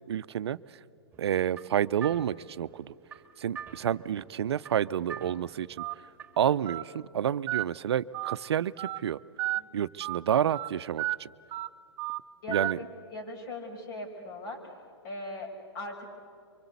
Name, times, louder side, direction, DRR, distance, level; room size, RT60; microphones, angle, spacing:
voice 1, 0.1-0.6 1.2-2.9 3.4-5.7 6.4-9.2 9.7-11.3 12.5-12.8, right 9 dB, 70° right, 15 dB, 0.6 m, -29 dB
sound 1, 1.1-6.6, right 7 dB, 15° right, 2.3 m, -47 dB
Telephone, 5.8-5.9 6.7-6.8 7.5-7.6 8.1-8.4 8.8-9.0 9.4-9.6 10.0-10.2 10.5-10.7 11.0-11.2 11.5-11.7 12.0-12.2 12.5-12.7, right 17 dB, 30° right, 0.6 m, -32 dB
voice 2, 13.1-14.7 15.0-16.1, left 2 dB, 55° left, 2 dB, 5.9 m, -39 dB
25.0 x 24.5 x 8.2 m, 2.3 s
hypercardioid pair, 125°, 14 cm